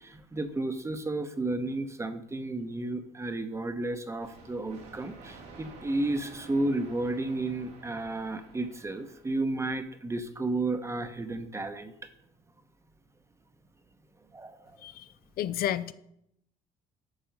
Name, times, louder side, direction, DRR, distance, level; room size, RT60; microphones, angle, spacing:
voice 1, 0.0-11.9 14.3-14.6, right 2 dB, 15° right, 9 dB, 0.9 m, -32 dB
sound 1, 4.2-9.8, right 4 dB, 85° right, 2.8 m, -51 dB
voice 2, 15.4-15.9, left 11 dB, 65° left, 14 dB, 0.5 m, -31 dB
9.0 x 6.2 x 5.3 m, 0.75 s
cardioid pair, 110°, 17 cm